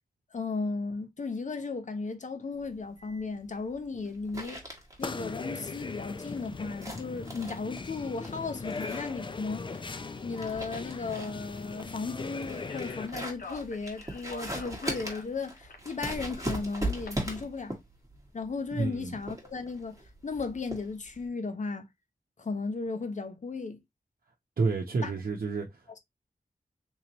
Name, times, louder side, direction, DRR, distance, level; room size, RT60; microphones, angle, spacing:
voice 1, 0.3-4.6 5.0-9.9 10.2-17.8 18.3-21.9 22.4-23.8 25.0-25.1, left 4 dB, 55° left, 0.8 m, -35 dB
sound 1, 2.6-21.3, right 1 dB, 20° right, 1.6 m, -40 dB
sound 2, 5.0-13.1, left 4 dB, 35° left, 0.4 m, -39 dB
Speech, 12.5-17.1, left 3 dB, 85° left, 1.0 m, -46 dB
voice 2, 18.8-19.2 24.6-26.0, right 4 dB, 70° right, 0.8 m, -30 dB
3.8 x 3.0 x 2.8 m
wide cardioid pair, 90°, 15 cm